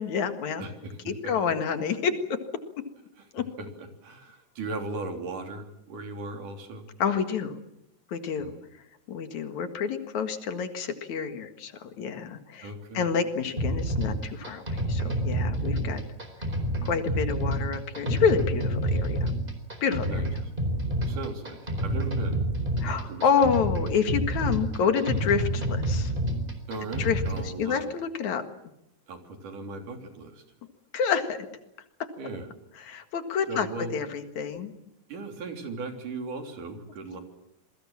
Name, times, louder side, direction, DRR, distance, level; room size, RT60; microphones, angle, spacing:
voice 1, 0.0-0.6 1.1-2.1 3.3-3.4 7.0-7.6 8.1-8.5 9.1-16.0 16.8-19.3 19.8-20.3 22.8-26.1 27.0-28.4 30.9-31.5 32.0-32.1 32.8-34.7, left 6 dB, 70° left, 8 dB, 3.1 m, -28 dB
voice 2, 0.6-1.0 1.2-1.5 3.2-3.3 3.6-6.9 8.4-8.5 12.6-13.1 20.1-20.3 21.1-22.4 23.1-23.5 26.7-27.9 29.1-30.4 32.2-32.5 33.5-33.9 35.1-37.2, right 3 dB, 85° right, 5 dB, 4.9 m, -37 dB
sound 1, 13.6-27.5, right 1 dB, 15° right, 4.2 m, -28 dB
28.0 x 22.0 x 7.4 m, 0.83 s
omnidirectional pair, 3.5 m